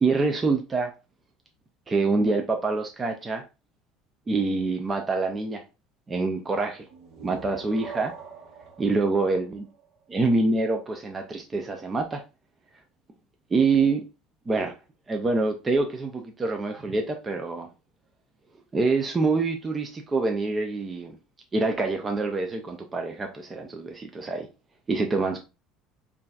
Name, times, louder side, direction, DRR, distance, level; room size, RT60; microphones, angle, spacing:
voice 1, 0.0-0.9 1.9-3.4 4.3-5.6 6.1-6.8 7.2-8.1 8.8-9.7 10.1-12.2 13.5-14.0 14.5-14.7 15.1-17.7 18.7-21.2 21.5-24.5 24.9-25.4, right 3 dB, 20° right, 0.4 m, -26 dB
sound 1, 6.8-10.4, right 6 dB, 50° right, 1.2 m, -44 dB
5.4 x 2.6 x 2.3 m
cardioid pair, 140°, 0 cm